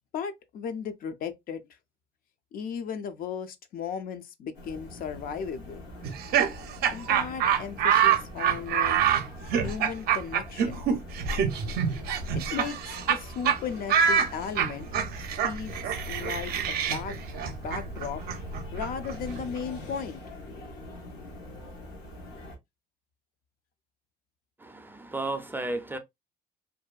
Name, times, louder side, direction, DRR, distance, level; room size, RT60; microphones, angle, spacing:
voice 1, 0.1-1.6 2.5-5.9 6.9-9.0 9.6-10.9 12.3-14.9 15.4-18.2 18.7-20.2, left 7 dB, 60° left, 0.4 m, -36 dB
sound 1, 4.5-22.6, left 1 dB, 85° left, 0.9 m, -44 dB
Laughter, 6.0-13.2 13.4-13.6 13.9-19.6, right 8 dB, 65° right, 0.5 m, -26 dB
voice 2, 24.6-26.0, right 2 dB, 10° right, 0.4 m, -33 dB
2.6 x 2.2 x 2.3 m
cardioid pair, 110°, 17 cm